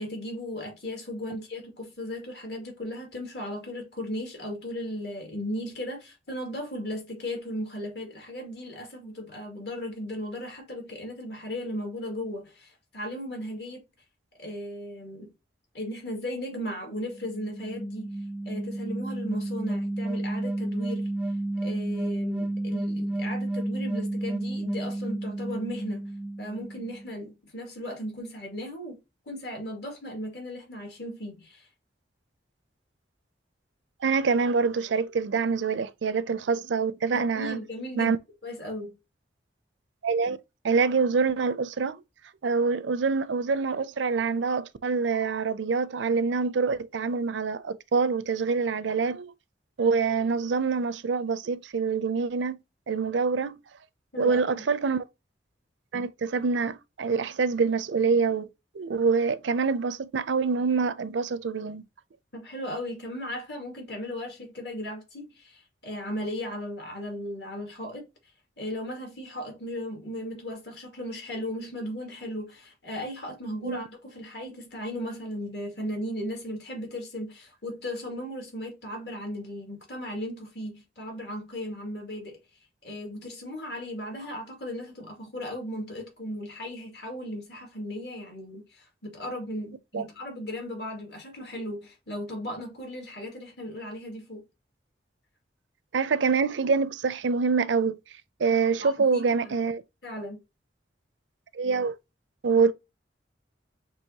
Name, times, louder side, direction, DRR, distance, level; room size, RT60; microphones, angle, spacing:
voice 1, 0.0-13.8 14.4-15.3 15.7-18.1 18.5-21.1 21.6-26.1 26.4-31.7 37.3-38.1 38.4-39.0 54.1-54.6 62.3-68.1 68.6-82.4 82.8-94.4 98.8-99.5 100.0-100.4, equal, 60° left, 2.3 m, -36 dB
sound 1, 17.0-27.1, right 2 dB, 5° right, 0.5 m, -31 dB
voice 2, 34.0-37.6 38.0-38.2 40.0-40.4 40.6-42.0 42.4-49.3 49.8-52.6 52.9-53.5 54.2-55.0 55.9-58.5 58.7-61.8 73.6-73.8 89.9-90.0 95.9-98.0 98.4-99.8 101.5-101.9 102.4-102.7, right 5 dB, 80° right, 0.5 m, -25 dB
6.2 x 3.0 x 2.8 m
head